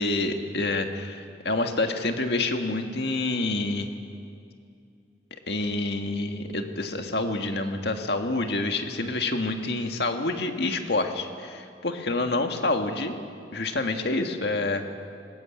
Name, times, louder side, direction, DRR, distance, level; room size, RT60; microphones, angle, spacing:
voice 1, 0.0-3.9 5.5-13.2 13.5-14.8, left 2 dB, 65° left, 5 dB, 1.9 m, -27 dB
22.0 x 19.5 x 8.6 m, 2.4 s
head